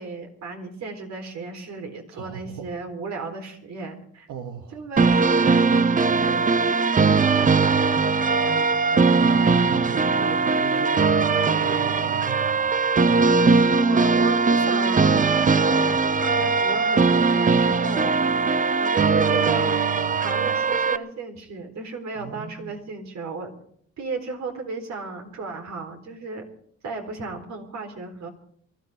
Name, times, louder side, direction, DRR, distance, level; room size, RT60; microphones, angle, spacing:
voice 1, 0.0-4.3 4.7-6.5 13.8-18.3 18.8-19.8 20.1-23.5 24.0-26.5 26.8-28.3, right 4 dB, 65° right, 4 dB, 4.0 m, -34 dB
voice 2, 2.1-2.7 4.3-4.8 8.4-12.8 22.1-22.8, right 7 dB, 80° right, 4 dB, 1.7 m, -38 dB
sound 1, 5.0-21.0, right 4 dB, 25° right, 0.7 m, -20 dB
24.5 x 14.0 x 3.6 m, 0.62 s
cardioid pair, 90°, 30 cm